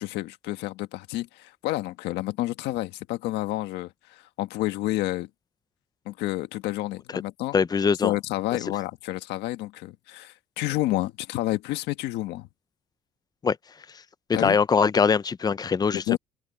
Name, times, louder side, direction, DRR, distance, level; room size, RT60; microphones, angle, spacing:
voice 1, 0.0-5.3 6.0-7.6 8.0-12.5 14.3-14.6 16.1-16.2, left 16 dB, 90° left, 1.5 m, -29 dB
voice 2, 7.5-8.1 13.4-13.6 14.3-16.2, left 5 dB, 25° left, 0.5 m, -22 dB
open air
cardioid pair, 110°, 17 cm